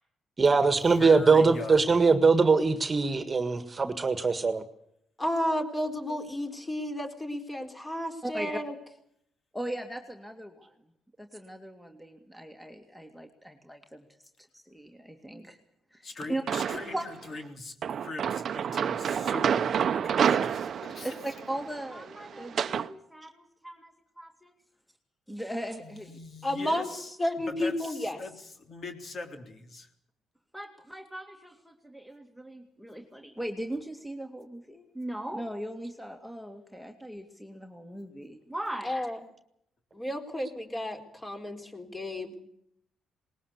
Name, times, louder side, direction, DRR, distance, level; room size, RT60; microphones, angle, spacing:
voice 1, 0.4-4.6, right 4 dB, 30° right, 10 dB, 1.7 m, -22 dB
voice 2, 1.0-2.0 16.0-21.1 25.8-27.1 27.5-29.9, left 3 dB, 45° left, 5 dB, 3.6 m, -41 dB
voice 3, 5.2-8.7 26.4-26.9 27.2-28.2 38.8-39.2 39.9-42.4, left 1 dB, 20° left, 5 dB, 4.2 m, -32 dB
voice 4, 9.5-10.8 11.2-14.0 14.5-15.6 15.9-16.4 16.9-17.0 21.0-24.5 25.3-26.1 30.5-38.9, right 1 dB, 5° left, 4 dB, 2.3 m, -39 dB
sound 1, 16.5-17.1 17.8-22.9, right 8 dB, 55° right, 0.8 m, -29 dB
20.0 x 20.0 x 8.3 m, 0.74 s
cardioid pair, 90°, 0 cm